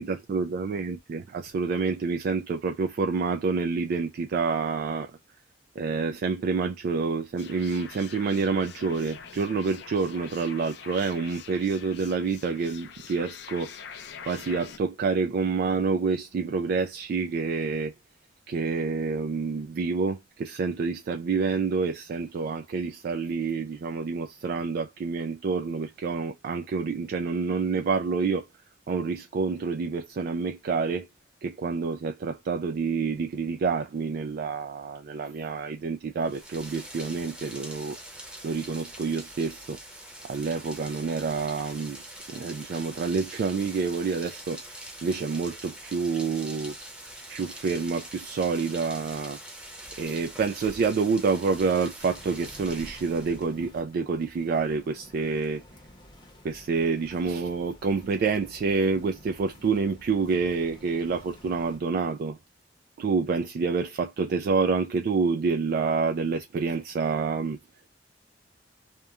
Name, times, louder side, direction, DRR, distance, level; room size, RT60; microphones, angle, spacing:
voice 1, 0.0-5.1 5.8-17.9 18.5-28.4 28.9-31.1 31.4-38.0 38.4-39.8 40.2-42.0 42.3-46.7 47.3-49.4 50.0-55.6 56.4-62.4 63.0-67.6, right 4 dB, 55° right, 0.3 m, -28 dB
sound 1, 7.4-14.8, left 7 dB, 65° left, 0.4 m, -45 dB
Rain, 36.2-53.6, right 1 dB, 5° right, 0.7 m, -44 dB
sound 2, 52.0-61.8, left 1 dB, 25° left, 0.7 m, -51 dB
2.9 x 2.1 x 2.3 m
head